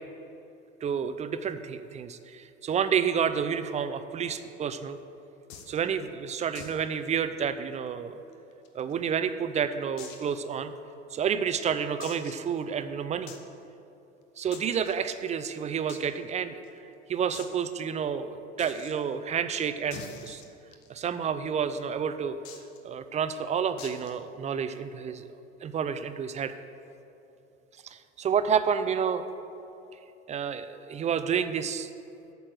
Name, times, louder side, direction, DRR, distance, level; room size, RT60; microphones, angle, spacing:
voice 1, 0.8-5.0 5.7-8.2 8.7-10.7 11.1-13.3 14.4-16.5 17.1-20.4 20.9-22.4 22.8-25.3 25.6-26.5 27.9-29.2 30.3-31.9, right 7 dB, 20° right, 11 dB, 0.4 m, -29 dB
sound 1, 5.5-5.8 6.5-6.8 7.1-7.2 7.6-7.7 8.3-9.1 10.0-10.3 10.9-11.0 12.0-12.5 13.3-13.5 14.5-14.9 15.9-16.0 16.3-16.4 16.6-16.7 17.3-17.6 18.6-18.9 19.9-21.0 22.4-22.8 23.8-24.2, left 7 dB, 50° left, 1.2 m, -45 dB
8.5 x 6.8 x 7.7 m, 2.9 s
figure-of-eight pair, 75°, 36 cm